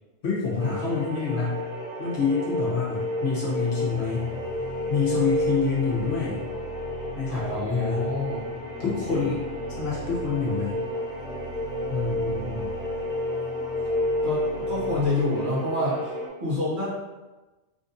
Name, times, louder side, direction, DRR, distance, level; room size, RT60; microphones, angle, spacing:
voice 1, 0.2-1.6 2.0-4.3 4.9-6.5 7.1-8.1 8.8-9.4 9.7-10.8 11.9-12.7, left 5 dB, 60° left, -6 dB, 1.1 m, -27 dB
sound 1, 0.6-16.3, left 1 dB, 5° right, 0.5 m, -31 dB
sound 2, 3.8-15.1, right 1 dB, 85° left, 0.9 m, -40 dB
voice 2, 7.3-8.5 8.8-9.3 14.2-14.4 14.7-16.1 16.4-16.9, left 2 dB, 45° right, -8 dB, 1.1 m, -28 dB
3.5 x 2.5 x 2.6 m, 1.1 s
omnidirectional pair, 1.3 m